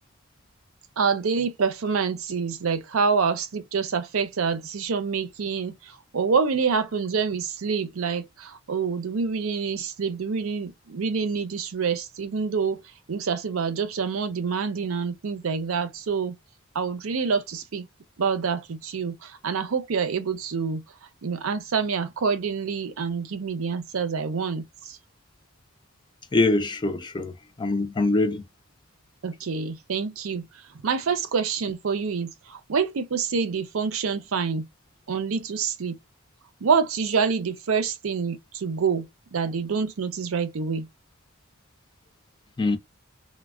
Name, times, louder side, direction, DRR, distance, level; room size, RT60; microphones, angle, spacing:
voice 1, 1.0-12.8 13.1-16.4 16.7-17.9 18.2-20.8 21.2-25.0 29.2-30.5 30.8-34.7 35.1-36.0 36.6-39.1 39.3-40.9, right 5 dB, 80° right, 0.5 m, -27 dB
voice 2, 26.3-27.3 27.6-28.4 42.6-42.8, left 2 dB, 20° left, 0.4 m, -23 dB
3.2 x 2.1 x 2.3 m
head